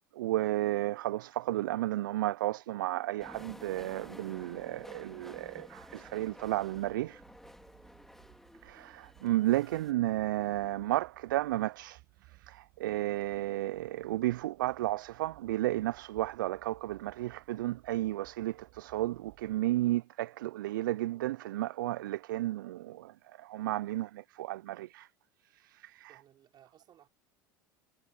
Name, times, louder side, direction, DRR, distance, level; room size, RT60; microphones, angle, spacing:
voice 1, 0.2-7.2 8.6-12.0 12.5-23.1 23.4-25.1 25.7-26.1, right 15 dB, 75° right, 0.4 m, -33 dB
sound 1, 3.2-9.9, left 1 dB, 5° left, 2.7 m, -52 dB
sound 2, 4.7-19.6, right 23 dB, 60° right, 6.7 m, -62 dB
voice 2, 26.1-27.1, right 11 dB, 40° right, 5.3 m, -60 dB
hypercardioid pair, 80°, 11 cm